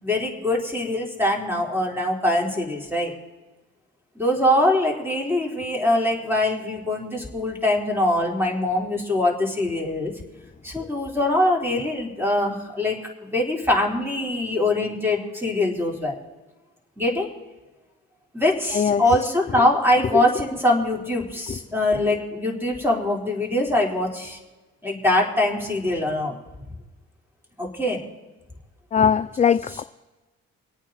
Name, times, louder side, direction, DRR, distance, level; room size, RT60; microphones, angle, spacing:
voice 1, 0.0-3.1 4.2-10.1 10.6-16.2 17.0-17.3 18.3-24.4 24.8-26.4 27.6-28.0, left 1 dB, 5° right, 0 dB, 3.9 m, -23 dB
voice 2, 28.9-29.8, left 7 dB, 25° left, 12 dB, 0.4 m, -20 dB
26.0 x 8.9 x 4.1 m, 1.2 s
cardioid pair, 90°, 30 cm